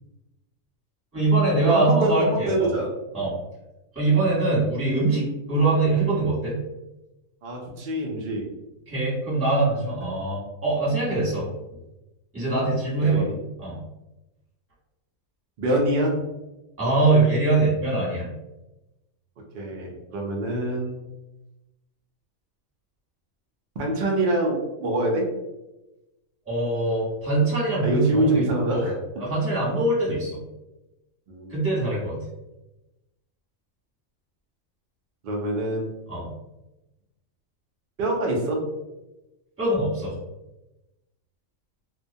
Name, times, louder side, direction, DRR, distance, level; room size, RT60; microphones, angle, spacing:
voice 1, 1.1-2.7 3.1-3.3 3.9-6.6 8.9-11.5 12.3-13.3 13.6-13.8 16.8-18.3 26.4-28.4 28.7-28.9 29.2-30.4 31.5-32.2 36.1-36.3 39.6-40.2, right 2 dB, 10° right, -7 dB, 0.9 m, -23 dB
voice 2, 1.6-2.9 7.4-8.5 13.0-13.3 15.6-16.2 19.5-21.0 23.8-25.2 27.8-28.9 31.3-31.5 35.2-35.9 38.0-38.7, right 1 dB, 70° right, -1 dB, 0.5 m, -25 dB
2.2 x 2.1 x 2.6 m, 0.98 s
omnidirectional pair, 1.4 m